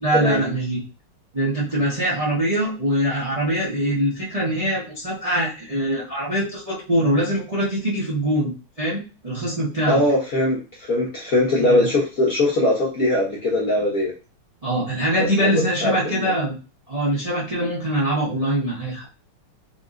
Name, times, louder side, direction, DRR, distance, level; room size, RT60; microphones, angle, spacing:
voice 1, 0.0-0.8 1.3-8.5 8.8-10.0 11.6-11.9 14.6-16.5 16.9-19.1, right 1 dB, 20° right, -7 dB, 1.0 m, -23 dB
voice 2, 9.9-14.1 15.2-15.9 16.2-16.3, left 1 dB, 55° left, -5 dB, 1.1 m, -21 dB
4.1 x 2.9 x 2.5 m, 0.32 s
omnidirectional pair, 2.4 m